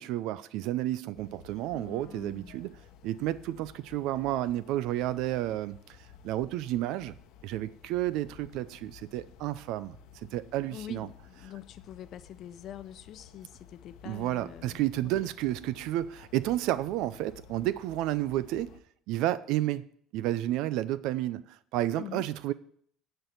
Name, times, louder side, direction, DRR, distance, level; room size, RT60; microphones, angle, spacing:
voice 1, 0.0-2.7 3.0-6.0 6.2-7.2 7.4-10.0 10.3-11.1 14.1-18.8 19.1-19.9 20.1-22.5, right 14 dB, 70° right, 0.4 m, -31 dB
sound 1, 1.1-18.8, left 8 dB, 70° left, 0.9 m, -54 dB
voice 2, 1.7-2.5 10.7-14.8 15.2-15.3 21.9-22.3, left 11 dB, 50° left, 0.5 m, -45 dB
10.5 x 4.5 x 7.9 m
cardioid pair, 130°, 0 cm